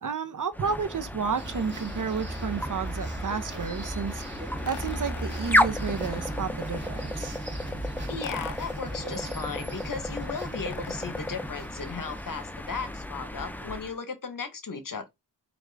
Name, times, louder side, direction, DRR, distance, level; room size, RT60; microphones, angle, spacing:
voice 1, 0.0-4.2 4.6-7.3, right 5 dB, 45° right, 0.8 m, -31 dB
sound 1, 0.5-13.9, left 1 dB, 5° left, 0.6 m, -33 dB
sound 2, 1.3-12.4, right 1 dB, 25° right, 1.5 m, -38 dB
sound 3, 4.6-6.6 8.2-8.8 10.6-11.7, left 10 dB, 70° left, 0.5 m, -44 dB
voice 2, 8.1-15.1, left 5 dB, 50° left, 0.9 m, -36 dB
4.8 x 2.5 x 3.4 m
cardioid pair, 60°, 43 cm